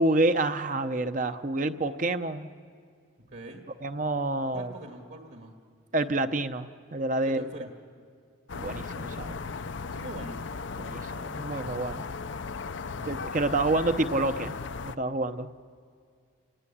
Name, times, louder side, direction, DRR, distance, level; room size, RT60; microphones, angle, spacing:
voice 1, 0.0-2.5 3.8-4.7 5.9-7.4 8.5-9.4 10.8-12.0 13.1-14.5 14.8-15.5, right 2 dB, 40° right, 9 dB, 0.7 m, -28 dB
voice 2, 3.3-3.6 4.5-5.6 7.1-7.7 9.9-10.4 12.8-13.2, right 2 dB, 60° right, 3 dB, 1.8 m, -43 dB
sound 1, 8.5-15.0, left 4 dB, 70° left, 0.6 m, -36 dB
28.0 x 18.0 x 9.8 m, 2.2 s
head